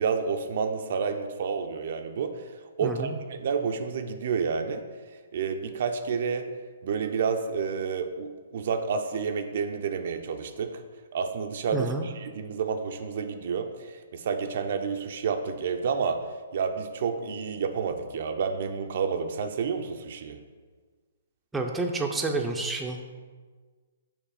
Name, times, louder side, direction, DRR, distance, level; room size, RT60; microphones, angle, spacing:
voice 1, 0.0-4.8 5.3-6.5 6.8-10.8 11.1-16.2 16.5-20.4, right 6 dB, 55° right, 6 dB, 0.5 m, -30 dB
voice 2, 2.8-3.2 11.7-12.1 21.5-23.1, right 3 dB, 5° right, 2 dB, 0.5 m, -29 dB
5.8 x 3.2 x 5.7 m, 1.5 s
hypercardioid pair, 130°, 0 cm